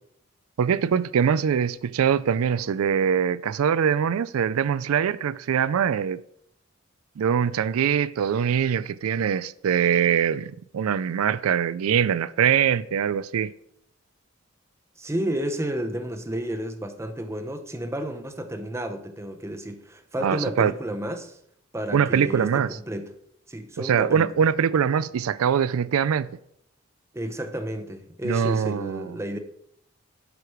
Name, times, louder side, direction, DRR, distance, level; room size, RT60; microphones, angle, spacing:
voice 1, 0.6-6.2 7.2-13.5 20.2-20.7 21.9-22.7 23.8-26.3 28.2-29.1, right 7 dB, 90° right, 0.4 m, -23 dB
voice 2, 15.0-21.4 21.7-23.2 23.5-24.3 27.1-29.4, right 1 dB, 15° right, 0.7 m, -31 dB
11.5 x 4.8 x 4.9 m
head